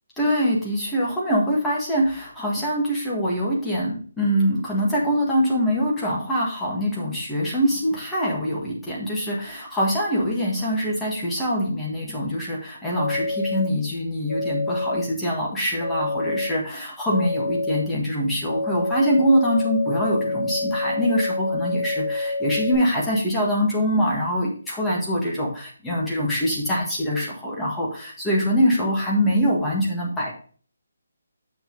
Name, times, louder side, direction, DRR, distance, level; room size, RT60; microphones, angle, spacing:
voice 1, 0.2-30.3, equal, 5° left, -5 dB, 1.6 m, -24 dB
sound 1, 12.9-13.7 14.3-15.0 15.8-16.5 17.1-17.8 18.5-22.8, left 2 dB, 65° left, 4.5 m, -27 dB
7.6 x 6.1 x 3.9 m, 0.43 s
hypercardioid pair, 175°, 0 cm